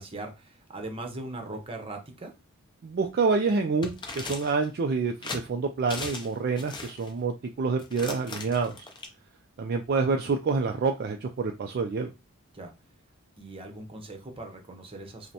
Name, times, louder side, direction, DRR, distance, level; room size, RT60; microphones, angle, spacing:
voice 1, 0.0-2.3 12.5-12.7 13.4-15.3, right 2 dB, 25° right, 0.8 m, -40 dB
voice 2, 2.8-8.7 9.6-12.1, right 4 dB, 45° right, 0.4 m, -27 dB
sound 1, 3.8-4.7 5.2-5.4 5.9-6.3 6.6-7.1 7.8-9.1, left 3 dB, 20° left, 0.6 m, -37 dB
5.2 x 2.1 x 2.8 m
head